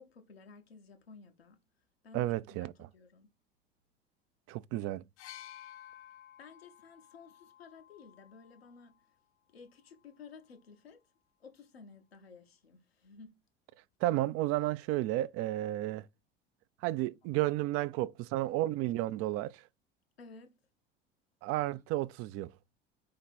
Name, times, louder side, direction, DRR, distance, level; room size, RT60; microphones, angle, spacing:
voice 1, 0.0-1.6 2.0-3.3 6.4-9.0 9.5-11.0 11.4-13.3 20.2-20.6, left 4 dB, 90° left, 0.9 m, -54 dB
voice 2, 2.1-2.7 4.5-5.0 14.0-16.0 16.8-19.6 21.4-22.5, right 16 dB, 50° right, 0.4 m, -32 dB
sound 1, 5.2-9.0 10.0-10.2, left 12 dB, 45° left, 0.5 m, -53 dB
4.5 x 2.8 x 4.1 m
hypercardioid pair, 70°, 30 cm